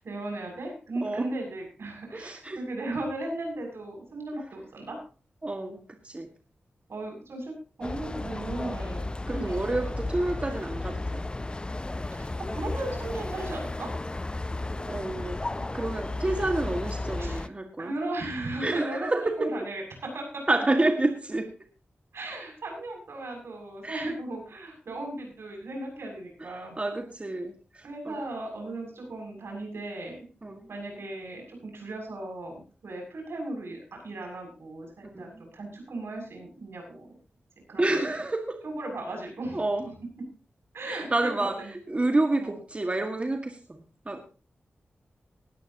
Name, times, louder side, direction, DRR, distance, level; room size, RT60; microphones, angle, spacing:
voice 1, 0.0-5.0 6.9-7.5 7.8-9.6 12.2-13.9 17.2-17.5 17.8-19.1 19.4-19.8 20.1-20.4 22.1-26.8 27.8-30.3 30.7-37.1 37.7-38.2 38.6-39.6 40.7-41.7 42.4-42.6, right 2 dB, 80° right, 1 dB, 7.1 m, -36 dB
voice 2, 2.1-2.6 5.4-6.3 9.3-11.2 14.7-15.4 15.7-17.9 18.6-19.5 20.5-21.5 23.8-24.1 26.4-28.2 30.4-30.7 35.0-35.4 37.8-38.6 39.5-39.9 40.8-44.2, right 2 dB, 30° right, 5 dB, 1.9 m, -29 dB
sound 1, 7.8-17.5, left 2 dB, 25° left, 0.6 m, -33 dB
19.0 x 13.5 x 2.9 m, 0.36 s
wide cardioid pair, 70°, 4 cm